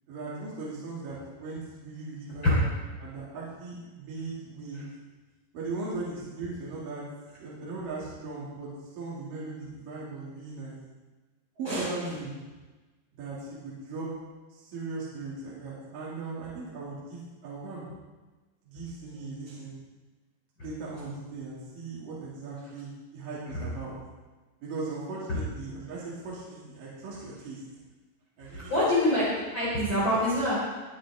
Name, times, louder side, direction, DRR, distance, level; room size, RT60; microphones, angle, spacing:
voice 1, 0.1-2.7 3.0-4.8 5.5-7.0 7.4-10.8 11.6-12.3 13.2-14.1 14.5-17.9 18.6-19.8 20.6-23.9 24.6-27.6 28.4-28.9, right 3 dB, 55° right, -7 dB, 4.1 m, -38 dB
voice 2, 28.7-30.6, left 1 dB, 25° left, -8 dB, 4.0 m, -25 dB
20.5 x 9.7 x 3.7 m, 1.2 s
omnidirectional pair, 5.1 m